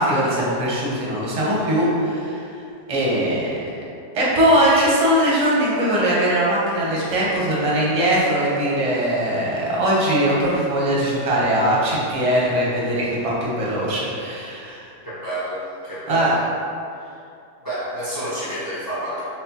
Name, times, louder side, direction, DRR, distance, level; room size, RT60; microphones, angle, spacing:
voice 1, 0.0-2.4 2.9-3.6 4.1-14.8 16.1-16.3, right 1 dB, 35° right, -6 dB, 0.6 m, -20 dB
voice 2, 15.0-16.3 17.0-17.1 17.6-19.2, right 1 dB, 15° left, -10 dB, 0.8 m, -29 dB
4.2 x 3.3 x 2.9 m, 2.5 s
omnidirectional pair, 1.8 m